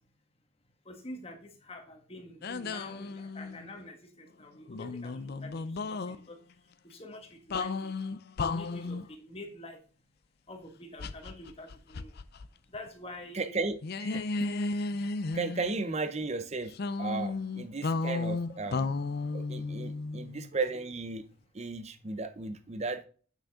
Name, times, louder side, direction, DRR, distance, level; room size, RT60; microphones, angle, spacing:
voice 1, 0.8-6.4 6.8-7.9 8.5-9.8 10.5-12.1 12.7-13.5, left 1 dB, 25° left, 1.4 m, -46 dB
sound 1, 2.4-3.7 4.7-6.2 7.5-9.1 11.0-12.5 12.7-12.9 13.8-15.9 16.7-20.5, left 3 dB, 45° left, 0.4 m, -34 dB
voice 2, 13.3-14.5 15.3-16.7 17.0-18.9 19.3-21.2 21.5-23.0, right 3 dB, 30° right, 0.6 m, -35 dB
8.5 x 6.3 x 3.7 m
head